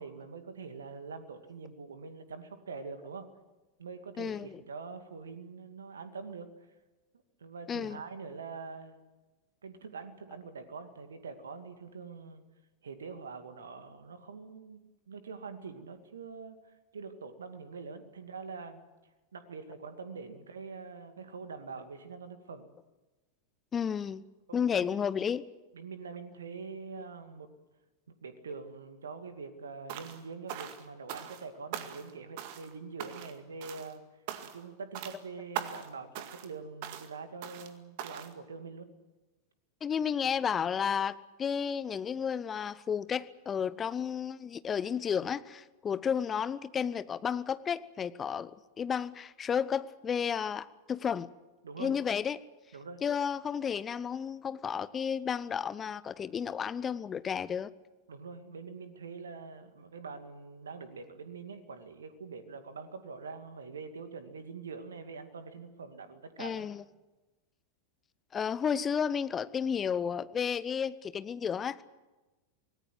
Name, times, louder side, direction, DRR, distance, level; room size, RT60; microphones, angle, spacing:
voice 1, 0.0-3.3 3.8-6.5 7.4-9.0 9.6-12.4 12.8-14.8 15.1-18.8 19.3-22.7 24.5-24.9 25.7-27.5 28.1-34.0 34.5-38.9 51.6-51.9 52.7-53.0 58.1-66.7, right 4 dB, 70° right, 9 dB, 2.3 m, -44 dB
voice 2, 4.2-4.6 7.7-8.0 23.7-24.2 24.5-25.4 39.8-51.3 51.8-52.4 53.0-57.7 66.4-66.8 68.3-71.8, left 7 dB, 20° left, 16 dB, 0.9 m, -32 dB
sound 1, 29.9-30.2 30.5-31.4 31.7-32.1 32.4-32.7 33.0-33.4 33.6-33.9 34.3-34.7 34.9-35.2 35.5-35.9 36.1-36.5 36.8-37.1 37.4-37.7 38.0-38.3, right 10 dB, 45° right, 2.0 m, -41 dB
26.0 x 19.0 x 7.8 m, 1.1 s
figure-of-eight pair, 90°, 0 cm